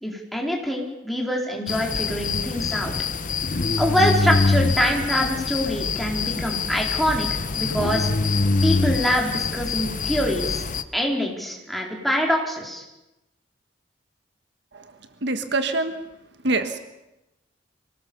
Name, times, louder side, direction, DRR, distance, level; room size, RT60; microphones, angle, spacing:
voice 1, 0.0-2.9 3.8-8.3 8.6-10.6 10.9-12.8, equal, ahead, -1 dB, 4.4 m, -25 dB
sound 1, 1.7-10.8, left 3 dB, 45° left, 0.9 m, -24 dB
voice 2, 15.2-16.0 16.4-16.8, right 2 dB, 65° right, 8 dB, 1.5 m, -24 dB
25.0 x 18.0 x 7.1 m, 0.96 s
head